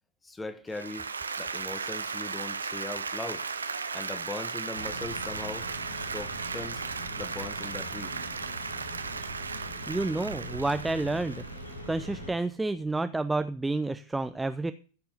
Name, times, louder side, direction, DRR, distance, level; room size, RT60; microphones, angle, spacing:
voice 1, 0.2-1.1 1.4-3.5 3.9-5.7 6.1-6.8 7.2-8.1, left 2 dB, 10° left, 1.7 m, -39 dB
Applause, 0.7-12.0, right 5 dB, 75° right, 1.0 m, -36 dB
sound 1, 4.7-12.3, equal, 80° left, 6.2 m, -42 dB
voice 2, 9.9-11.4 11.9-14.7, right 2 dB, 5° right, 0.6 m, -29 dB
15.0 x 6.9 x 6.6 m
figure-of-eight pair, 90°, 0 cm